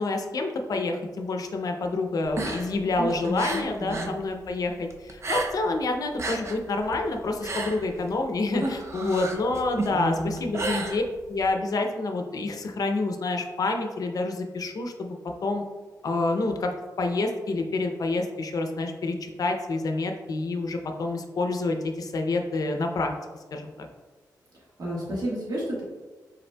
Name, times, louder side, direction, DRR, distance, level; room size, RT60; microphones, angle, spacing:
voice 1, 0.0-15.2 15.4-15.6 16.0-16.7 17.0-23.1 23.5-23.9, left 2 dB, 55° left, 4 dB, 0.5 m, -28 dB
sound 1, 2.2-4.2 4.5-5.8 6.1-11.5, right 2 dB, 40° right, 0.5 m, -33 dB
voice 2, 3.0-4.1 9.9-10.4 24.8-25.8, right 1 dB, 65° right, -6 dB, 1.4 m, -31 dB
5.2 x 4.0 x 2.2 m, 1.3 s
wide cardioid pair, 110°, 7 cm